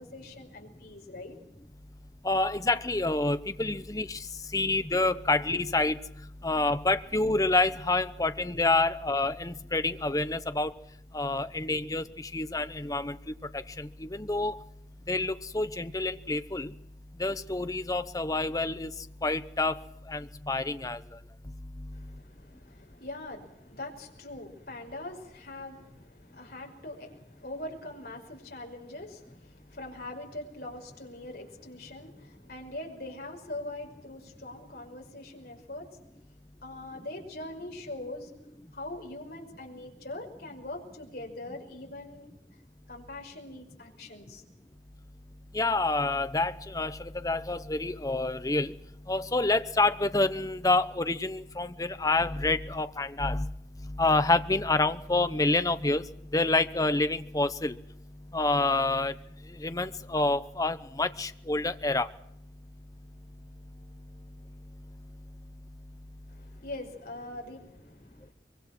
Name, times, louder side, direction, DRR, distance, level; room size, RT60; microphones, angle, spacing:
voice 1, 0.0-1.4 21.9-36.0 36.6-38.3 38.7-42.3 42.9-44.4 66.3-68.3, left 2 dB, 55° left, 1 dB, 5.5 m, -42 dB
voice 2, 2.2-4.2 4.5-6.0 6.4-10.7 11.1-12.0 12.3-13.2 13.8-14.6 15.1-16.7 17.2-18.9 19.2-19.8 20.1-21.0 45.5-47.0 47.2-48.7 49.1-53.5 54.0-56.0 56.3-57.8 58.3-59.1 59.6-62.1, left 2 dB, 20° left, 11 dB, 0.8 m, -27 dB
24.0 x 23.0 x 6.1 m, 0.80 s
head